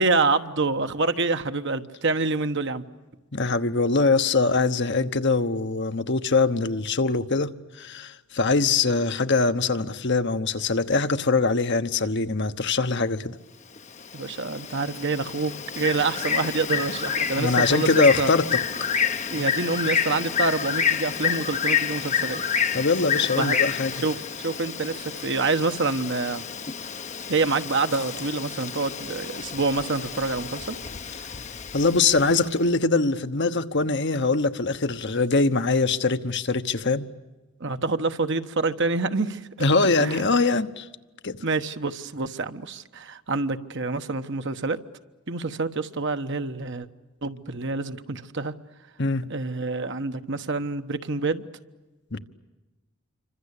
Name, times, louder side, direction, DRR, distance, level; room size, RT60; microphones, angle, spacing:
voice 1, 0.0-2.8 14.1-18.3 19.3-22.4 23.4-23.6 24.0-26.4 27.3-30.7 37.6-39.4 40.0-40.2 41.4-44.8 45.3-46.9 47.2-48.5 49.3-51.4, right 3 dB, 55° right, 1.2 m, -27 dB
voice 2, 3.3-7.5 7.8-13.3 17.4-18.6 22.7-23.9 31.7-37.1 39.6-40.9 41.2-41.4 49.0-49.3 52.1-52.2, left 3 dB, 50° left, 1.1 m, -23 dB
Bird, 13.8-32.5, left 7 dB, 30° left, 0.9 m, -29 dB
28.0 x 25.5 x 8.4 m
head